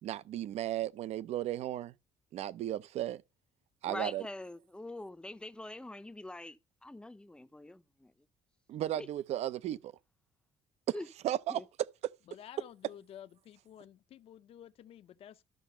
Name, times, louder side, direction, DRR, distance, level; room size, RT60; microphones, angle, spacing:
voice 1, 0.0-1.9 2.3-3.2 3.8-4.2 8.7-9.9 10.9-11.0 11.2-11.6 12.0-12.1, right 12 dB, 60° right, 0.6 m, -35 dB
voice 2, 3.9-8.1 9.0-9.1 10.9-11.1 11.5-11.6, left 1 dB, 5° left, 0.6 m, -44 dB
voice 3, 12.3-15.4, left 10 dB, 50° left, 0.7 m, -52 dB
12.0 x 6.0 x 5.5 m
cardioid pair, 130°, 12 cm